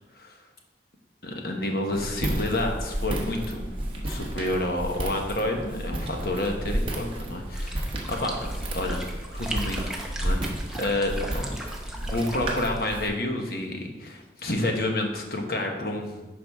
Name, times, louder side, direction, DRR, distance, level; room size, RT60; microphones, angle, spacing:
voice 1, 1.2-9.0 9.3-10.4 10.8-11.5 12.0-16.3, left 1 dB, 55° left, 2 dB, 1.1 m, -29 dB
Walk footsteps, 1.9-13.1, right 1 dB, 30° right, 1.0 m, -32 dB
sound 1, 7.5-12.9, right 1 dB, 5° right, 0.7 m, -39 dB
10.0 x 4.8 x 3.5 m, 1.1 s
head